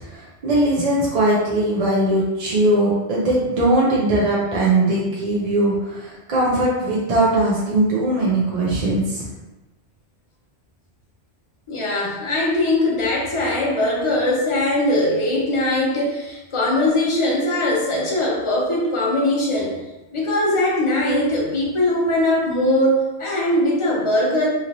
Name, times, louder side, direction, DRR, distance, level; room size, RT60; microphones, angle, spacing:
voice 1, 0.0-9.3, right 1 dB, 50° right, -5 dB, 0.5 m, -20 dB
voice 2, 11.7-19.8 20.1-24.5, left 1 dB, 35° left, -3 dB, 0.6 m, -20 dB
2.9 x 2.9 x 2.6 m, 1.0 s
omnidirectional pair, 1.1 m